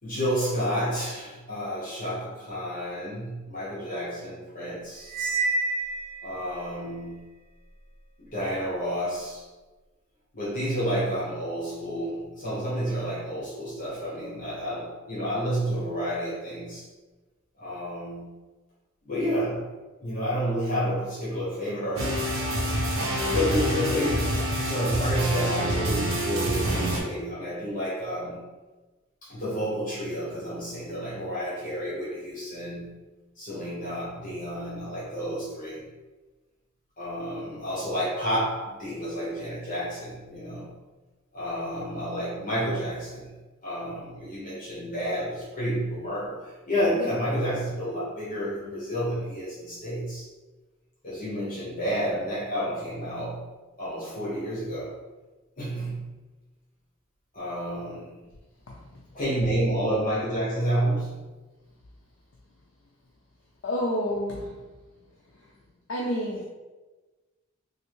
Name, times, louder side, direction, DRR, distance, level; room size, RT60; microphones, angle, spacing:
voice 1, 0.0-5.1 6.2-7.3 8.2-9.4 10.3-16.8 17.6-18.4 19.0-19.7 20.0-22.6 23.3-28.5 29.2-33.0 33.4-35.8 37.0-40.8 41.3-43.3 43.6-50.3 51.0-53.4 53.8-54.9 55.6-56.1 57.3-58.2 59.1-61.2, equal, 40° left, -9 dB, 1.1 m, -30 dB
Cymbal, 5.1-6.5, right 3 dB, 45° right, 0.7 m, -28 dB
sound 1, 22.0-27.0, equal, 75° right, 0.7 m, -27 dB
voice 2, 63.6-64.6 65.9-66.5, equal, 60° left, -2 dB, 0.4 m, -29 dB
3.2 x 2.5 x 3.0 m, 1.2 s
head